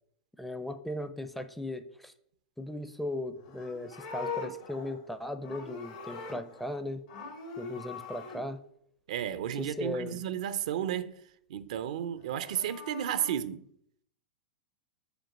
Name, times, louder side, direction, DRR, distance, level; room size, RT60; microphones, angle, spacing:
voice 1, 0.4-2.1 2.6-7.0 7.6-8.6 9.6-10.2, left 1 dB, 5° left, 0.5 m, -37 dB
Livestock farm animals working animals, 3.4-6.8 7.1-8.4 12.2-13.3, left 5 dB, 75° left, 2.2 m, -42 dB
voice 2, 9.1-11.2 11.5-13.6, right 10 dB, 75° right, 0.5 m, -33 dB
5.2 x 4.3 x 6.0 m
hypercardioid pair, 115°, 4 cm